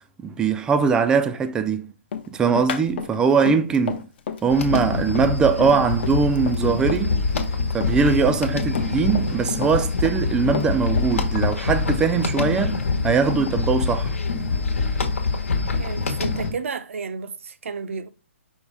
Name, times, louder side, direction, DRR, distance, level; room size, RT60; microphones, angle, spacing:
voice 1, 0.2-1.9 2.3-4.1 4.4-7.3 7.7-14.1, right 5 dB, 10° right, 0.3 m, -21 dB
Run, 2.1-7.5 7.8-9.4 9.6-11.2 11.4-12.8, left 7 dB, 50° left, 0.7 m, -31 dB
sound 1, 4.5-16.5, left 4 dB, 75° left, 1.1 m, -25 dB
sound 2, 6.6-12.8, right 2 dB, 90° right, 1.1 m, -41 dB
voice 2, 15.8-18.1, right 5 dB, 70° right, 0.6 m, -32 dB
5.3 x 2.1 x 4.7 m
hypercardioid pair, 140°, 7 cm